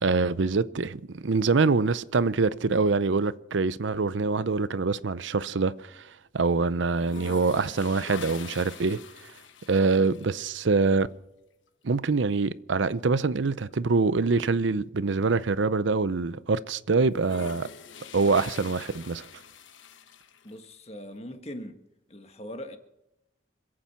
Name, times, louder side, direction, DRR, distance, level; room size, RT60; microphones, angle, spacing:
voice 1, 0.0-6.1 6.3-9.0 9.7-11.1 11.8-17.7 18.1-19.2, right 4 dB, 75° right, 0.6 m, -25 dB
sound 1, 2.9-3.7 4.0-6.0 6.3-6.4 6.9-10.6 12.0-12.2 12.6-12.7 13.0-15.4 15.9-16.0 17.0-20.7, left 5 dB, 80° left, 1.1 m, -45 dB
voice 2, 20.4-21.8 22.1-22.8, equal, 35° left, 1.5 m, -40 dB
26.5 x 8.8 x 5.7 m
head